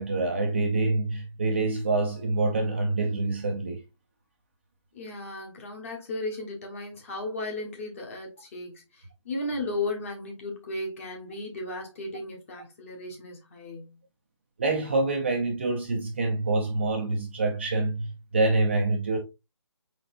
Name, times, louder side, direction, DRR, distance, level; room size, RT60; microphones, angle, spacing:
voice 1, 0.0-3.8 14.6-19.2, right 2 dB, 25° right, 0.4 m, -26 dB
voice 2, 4.9-14.0, left 2 dB, 25° left, 1.2 m, -35 dB
4.5 x 4.1 x 2.5 m
hypercardioid pair, 165°, 16 cm